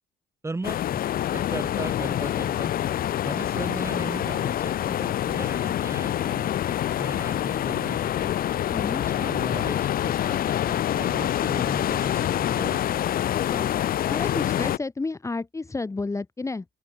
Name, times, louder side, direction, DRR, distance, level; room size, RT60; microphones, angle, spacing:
voice 1, 0.4-2.7 3.2-8.4 9.0-13.0, right 3 dB, 15° right, 6.4 m, -37 dB
sound 1, 0.6-14.8, left 11 dB, 60° left, 2.1 m, -26 dB
voice 2, 8.7-9.0 13.5-13.7 14.1-16.6, left 3 dB, 15° left, 3.1 m, -31 dB
open air
cardioid pair, 110°, 17 cm